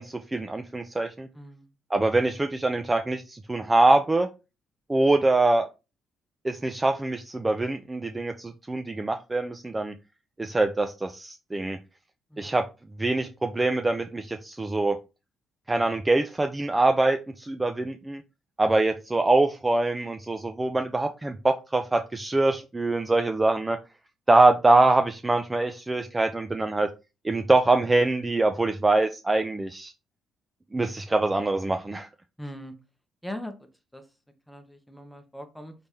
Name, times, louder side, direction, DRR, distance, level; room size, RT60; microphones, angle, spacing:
voice 1, 0.0-1.3 1.9-4.3 4.9-5.7 6.4-9.9 10.4-11.8 12.4-12.6 13.0-15.0 15.7-18.2 18.6-23.8 24.3-26.9 27.2-29.9 30.7-32.1, right 2 dB, 20° right, 6 dB, 0.4 m, -24 dB
voice 2, 1.3-1.7 12.3-12.5 32.4-32.7 33.2-34.0 34.5-35.7, left 1 dB, 5° left, 7 dB, 1.0 m, -40 dB
4.1 x 3.3 x 3.4 m, 0.28 s
cardioid pair, 90°, 0 cm